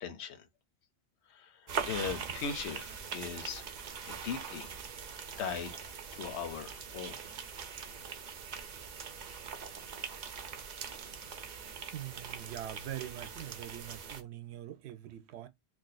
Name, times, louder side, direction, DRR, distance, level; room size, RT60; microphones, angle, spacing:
voice 1, 0.0-0.5 1.3-3.6 4.1-4.7 5.1-5.8 6.1-7.2, left 7 dB, 85° left, 0.9 m, -39 dB
sound 1, 1.7-14.2, right 6 dB, 50° right, 0.6 m, -42 dB
voice 2, 11.9-15.5, right 12 dB, 80° right, 0.8 m, -43 dB
2.6 x 2.4 x 3.9 m
omnidirectional pair, 1.1 m